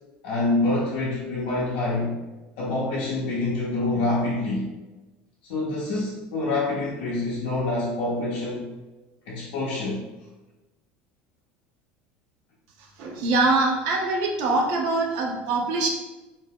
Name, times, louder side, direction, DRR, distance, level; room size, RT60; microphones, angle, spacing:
voice 1, 0.2-2.2 2.6-4.7 5.4-8.7 9.3-10.0, left 2 dB, 75° left, -6 dB, 0.5 m, -26 dB
voice 2, 13.0-15.9, right 3 dB, 75° right, 1 dB, 0.6 m, -23 dB
2.6 x 2.2 x 3.4 m, 1.1 s
supercardioid pair, 90°, 5 cm